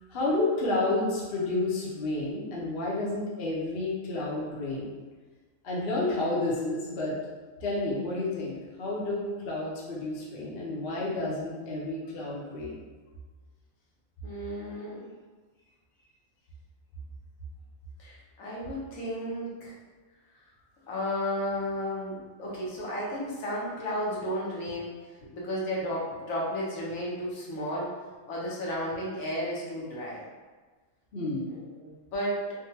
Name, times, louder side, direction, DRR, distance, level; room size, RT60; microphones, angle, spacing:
voice 1, 0.1-4.9 5.6-7.1 7.6-12.8 31.1-31.5, left 2 dB, 55° left, -5 dB, 0.8 m, -30 dB
voice 2, 14.2-15.1 18.0-19.7 20.9-27.9 28.3-30.3 31.5-32.4, equal, 75° left, -4 dB, 1.1 m, -33 dB
3.7 x 2.2 x 2.7 m, 1.3 s
omnidirectional pair, 1.4 m